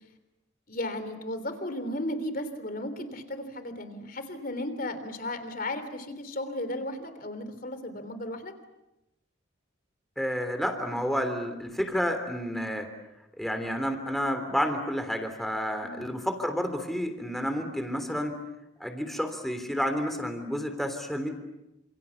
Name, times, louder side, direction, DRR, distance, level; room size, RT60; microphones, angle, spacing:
voice 1, 0.7-8.5 15.8-16.1, left 1 dB, 45° left, 11 dB, 3.5 m, -35 dB
voice 2, 10.2-12.9 13.4-18.4 18.8-21.3, equal, ahead, 6 dB, 3.3 m, -30 dB
29.5 x 27.5 x 7.2 m, 0.93 s
head